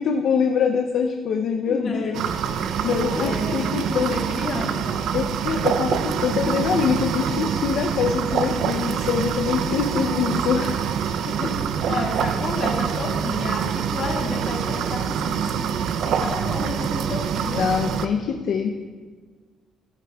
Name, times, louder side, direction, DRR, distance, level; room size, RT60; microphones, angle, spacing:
voice 1, 0.0-4.1 5.1-10.9 17.6-18.7, left 6 dB, 60° left, 4 dB, 0.5 m, -24 dB
voice 2, 1.7-2.2 3.1-5.1 11.3-15.7 16.0-17.6, left 3 dB, 40° left, -1 dB, 1.7 m, -31 dB
sound 1, 2.1-18.1, right 8 dB, 60° right, 0.4 m, -25 dB
13.5 x 11.0 x 2.3 m, 1.5 s
cardioid pair, 165°, 0 cm